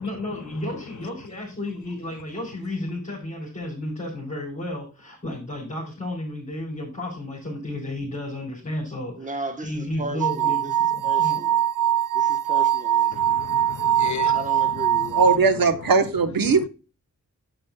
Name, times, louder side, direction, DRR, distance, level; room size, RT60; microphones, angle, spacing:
voice 1, 0.0-11.4, left 1 dB, 20° left, 4.1 m, -32 dB
voice 2, 9.2-10.7 11.0-11.6 12.1-13.3 14.3-15.2, right 2 dB, 25° right, 1.0 m, -35 dB
sound 1, 10.2-15.4, right 11 dB, 70° right, 0.5 m, -22 dB
voice 3, 13.1-14.4 14.9-15.2 16.5-16.6, left 9 dB, 60° left, 0.5 m, -35 dB
voice 4, 15.2-16.7, right 4 dB, 85° right, 1.0 m, -19 dB
8.7 x 8.4 x 2.2 m
wide cardioid pair, 75°, 34 cm